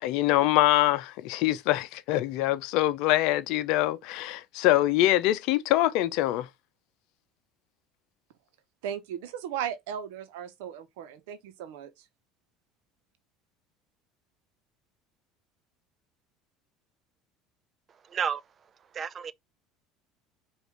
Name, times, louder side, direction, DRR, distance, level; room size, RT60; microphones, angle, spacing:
voice 1, 0.0-6.5, left 15 dB, 70° left, 0.6 m, -24 dB
voice 2, 8.8-11.9, right 9 dB, 80° right, 0.9 m, -36 dB
voice 3, 18.9-19.3, right 7 dB, 40° right, 0.4 m, -30 dB
5.0 x 2.6 x 3.3 m
hypercardioid pair, 80°, 0 cm